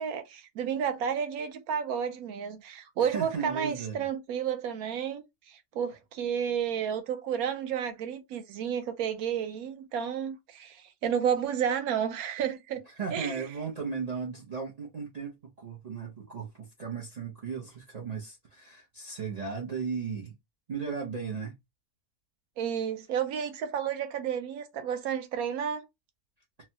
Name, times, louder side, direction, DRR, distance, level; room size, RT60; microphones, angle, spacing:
voice 1, 0.0-12.8 13.1-13.5 22.6-25.8, right 8 dB, 70° right, 1.1 m, -31 dB
voice 2, 3.0-4.0 13.0-20.3 20.7-21.6, right 5 dB, 50° right, 0.5 m, -36 dB
3.1 x 2.2 x 2.7 m
omnidirectional pair, 1.7 m